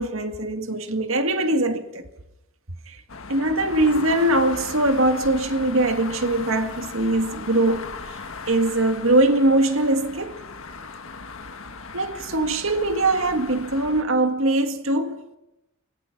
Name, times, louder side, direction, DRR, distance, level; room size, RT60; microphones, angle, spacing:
voice 1, 0.0-2.1 2.9-3.0 3.3-8.2 8.5-10.4 11.9-15.2, right 2 dB, 70° right, 1.9 m, -22 dB
sound 1, 3.1-14.0, left 4 dB, 70° left, 1.6 m, -38 dB
23.5 x 21.0 x 6.0 m
head